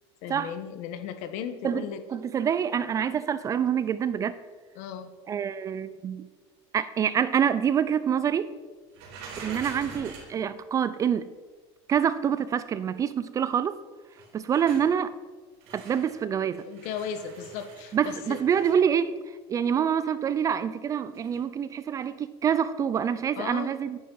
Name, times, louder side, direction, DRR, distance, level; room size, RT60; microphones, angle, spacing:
voice 1, 0.2-2.0 4.7-5.1 16.6-18.4 23.3-23.7, left 8 dB, 60° left, 1.4 m, -36 dB
voice 2, 2.1-4.4 5.3-6.3 6.7-8.5 9.4-11.3 11.9-13.8 14.3-15.1 15.7-16.6 17.9-19.1 19.5-24.0, right 8 dB, 25° right, 0.4 m, -26 dB
sound 1, 8.9-10.4 14.1-14.9 15.6-16.2 16.6-18.8 21.1-21.4, right 4 dB, 75° right, 4.1 m, -44 dB
11.5 x 9.5 x 5.5 m
supercardioid pair, 150°, 14 cm